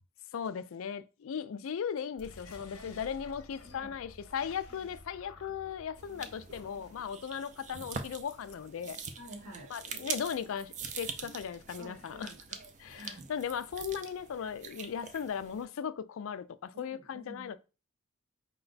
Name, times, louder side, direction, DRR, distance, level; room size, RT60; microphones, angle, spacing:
voice 1, 0.3-9.0 9.7-12.3 12.8-17.6, left 7 dB, 65° left, 0.3 m, -37 dB
sound 1, 2.1-7.2, left 2 dB, 90° left, 0.8 m, -52 dB
voice 2, 3.6-3.9 9.2-9.7 11.8-13.2 16.7-17.5, right 1 dB, 75° right, 1.0 m, -50 dB
sound 2, 6.0-15.7, right 5 dB, 35° right, 0.4 m, -44 dB
5.0 x 2.2 x 3.9 m
head